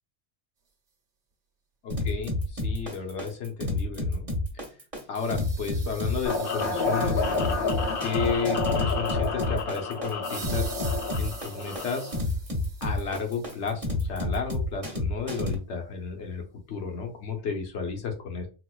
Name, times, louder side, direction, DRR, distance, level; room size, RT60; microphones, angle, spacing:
voice 1, 1.8-4.3 5.1-7.5 8.0-10.7 11.2-12.1 12.8-18.5, left 5 dB, 75° left, 3 dB, 1.1 m, -32 dB
sound 1, 1.9-15.5, left 2 dB, 30° right, 1.1 m, -29 dB
sound 2, 5.1-8.5 10.2-13.7, right 5 dB, 75° right, 1.2 m, -45 dB
sound 3, 6.2-12.2, left 4 dB, 55° left, 0.9 m, -30 dB
4.1 x 2.5 x 2.3 m, 0.33 s
omnidirectional pair, 1.2 m